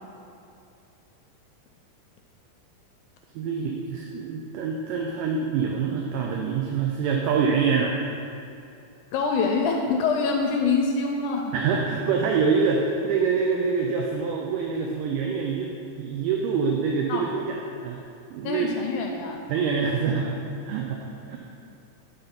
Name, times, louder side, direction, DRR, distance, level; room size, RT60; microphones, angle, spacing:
voice 1, 3.4-8.0 11.5-15.7 16.0-18.0 18.3-18.7 19.5-20.4 20.7-21.4, right 5 dB, 80° right, 0 dB, 2.0 m, -25 dB
voice 2, 9.1-11.5 17.1-17.2 18.4-19.4, left 4 dB, 85° left, 2 dB, 1.8 m, -25 dB
10.0 x 4.1 x 5.2 m, 2.7 s
omnidirectional pair, 4.0 m